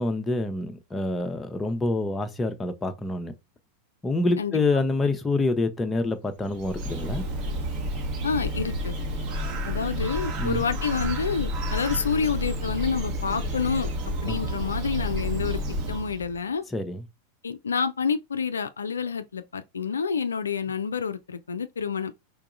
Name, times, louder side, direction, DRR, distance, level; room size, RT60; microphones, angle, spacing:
voice 1, 0.0-3.3 4.0-7.2 10.4-10.6 14.3-14.4 16.7-17.0, left 2 dB, 10° left, 0.6 m, -27 dB
Bird, 6.3-16.4, equal, 35° right, 1.0 m, -30 dB
voice 2, 8.2-9.0 9.7-13.9 14.2-15.6 15.9-16.6 17.4-22.1, left 6 dB, 70° left, 0.3 m, -28 dB
4.6 x 3.8 x 2.4 m
figure-of-eight pair, 90°, 0 cm